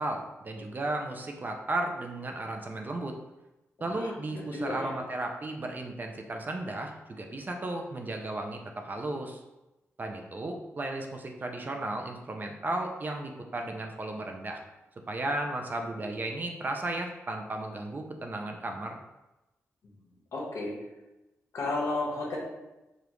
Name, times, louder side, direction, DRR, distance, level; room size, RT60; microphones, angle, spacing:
voice 1, 0.0-3.2 3.8-9.4 10.0-14.6 15.1-19.0, right 2 dB, 35° right, 3 dB, 0.5 m, -34 dB
voice 2, 3.8-5.0 20.3-20.8 21.5-22.4, left 2 dB, 80° left, -3 dB, 1.1 m, -33 dB
5.0 x 2.4 x 3.0 m, 1.0 s
cardioid pair, 95°, 5 cm